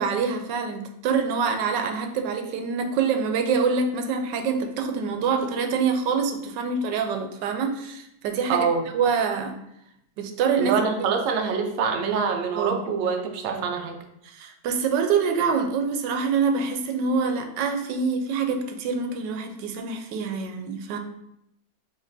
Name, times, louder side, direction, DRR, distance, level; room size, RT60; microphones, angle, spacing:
voice 1, 0.0-8.7 8.9-9.6 10.2-10.8 12.5-12.8 14.3-21.0, right 5 dB, 85° right, 5 dB, 1.2 m, -25 dB
voice 2, 8.5-8.9 10.6-14.0, right 5 dB, 70° right, 4 dB, 0.8 m, -25 dB
5.2 x 3.1 x 2.6 m, 0.80 s
omnidirectional pair, 1.8 m